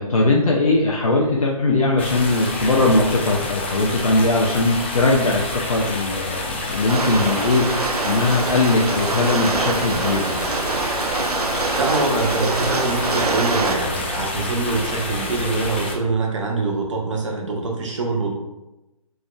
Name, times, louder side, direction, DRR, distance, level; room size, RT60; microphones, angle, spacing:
voice 1, 0.0-5.4 5.7-10.4, left 2 dB, 65° left, -3 dB, 0.6 m, -20 dB
sound 1, 2.0-15.9, left 2 dB, 20° left, 0.3 m, -28 dB
Rain, 6.9-13.8, right 3 dB, 85° right, 0.5 m, -25 dB
voice 2, 11.8-18.3, right 3 dB, 55° right, 0 dB, 1.0 m, -24 dB
4.9 x 3.2 x 2.3 m, 0.98 s
figure-of-eight pair, 145°, 19 cm